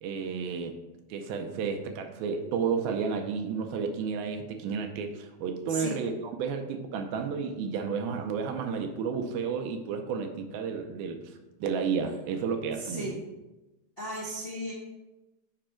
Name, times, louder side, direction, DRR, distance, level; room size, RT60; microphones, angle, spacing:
voice 1, 0.0-0.8 1.1-11.2 11.6-13.2, right 6 dB, 80° right, 5 dB, 2.4 m, -32 dB
voice 2, 12.8-13.2 14.0-14.7, equal, 50° left, -7 dB, 0.6 m, -35 dB
7.6 x 5.3 x 4.4 m, 1.0 s
omnidirectional pair, 4.5 m